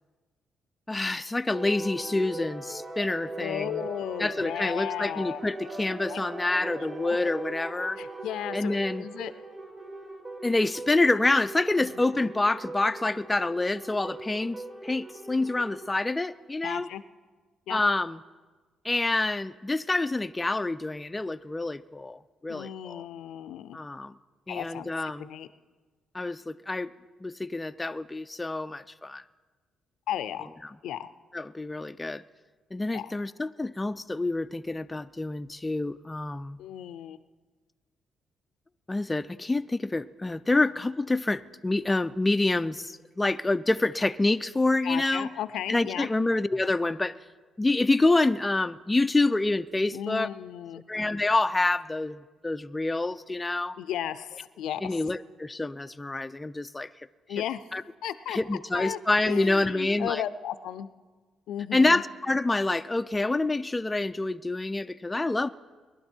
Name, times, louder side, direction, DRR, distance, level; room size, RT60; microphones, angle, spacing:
voice 1, 0.9-3.8 4.2-8.0 8.5-9.0 10.4-16.9 17.7-18.2 18.8-23.0 23.7-24.1 24.5-25.3 26.1-26.9 27.2-29.2 31.3-32.2 32.7-36.6 38.9-45.3 45.7-47.1 47.6-50.3 50.9-53.8 54.8-56.9 57.3-57.4 57.7-57.8 58.3-60.2 61.7-65.5, left 2 dB, 15° left, 11 dB, 0.4 m, -27 dB
sound 1, 1.5-15.9, right 2 dB, 35° right, 2.0 m, -40 dB
voice 2, 3.4-5.4 6.1-6.2 6.8-7.2 8.0-9.3 11.8-12.3 16.6-17.0 17.7-17.8 22.5-23.8 24.5-24.9 25.2-25.5 30.1-30.5 30.8-31.1 32.9-33.1 36.6-37.2 44.8-46.1 49.9-50.8 53.8-55.0 57.3-57.6 58.0-58.4 58.7-60.9 61.5-62.0, left 11 dB, 80° left, 14 dB, 0.5 m, -35 dB
20.0 x 11.5 x 4.5 m, 1.4 s
cardioid pair, 90°, 0 cm